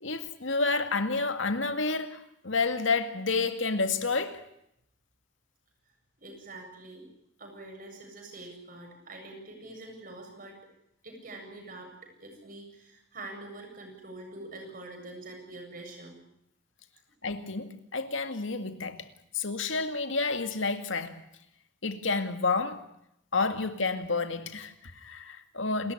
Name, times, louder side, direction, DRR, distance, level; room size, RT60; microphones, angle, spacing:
voice 1, 0.0-4.4 17.2-19.1 19.3-21.2 21.8-22.8 23.3-25.9, left 3 dB, 80° left, 2.2 m, -30 dB
voice 2, 6.2-7.1 7.4-10.6 11.0-16.2, right 2 dB, 45° right, 7.7 m, -45 dB
29.0 x 14.0 x 10.0 m
head